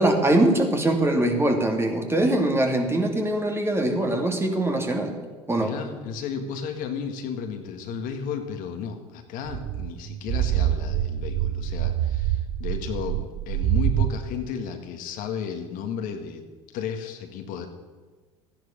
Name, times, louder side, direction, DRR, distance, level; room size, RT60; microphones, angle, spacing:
voice 1, 0.0-5.1 5.5-5.7, right 1 dB, 15° right, 3 dB, 2.5 m, -22 dB
voice 2, 5.6-16.4 16.7-17.7, left 6 dB, 60° left, 5 dB, 1.8 m, -33 dB
sound 1, 9.5-14.1, right 12 dB, 55° right, 0.7 m, -25 dB
14.0 x 10.5 x 6.7 m, 1.4 s
hypercardioid pair, 75°, 16 cm